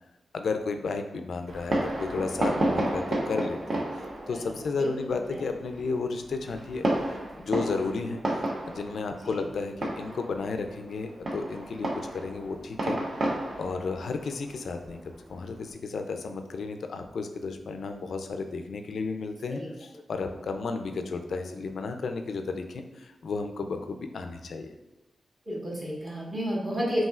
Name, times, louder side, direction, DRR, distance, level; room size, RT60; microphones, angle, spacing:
voice 1, 0.3-3.8 4.3-6.9 7.1-8.2 8.7-13.3 13.6-15.0 15.3-24.7, left 4 dB, 70° left, 6 dB, 0.4 m, -33 dB
Fireworks, 1.5-15.6, right 1 dB, 50° right, 0.7 m, -32 dB
voice 2, 4.3-5.1 5.3-5.4 9.2-9.4 19.5-19.7 25.4-27.0, equal, 30° right, -5 dB, 1.4 m, -32 dB
5.5 x 2.8 x 2.4 m, 1.0 s
wide cardioid pair, 120°, 0 cm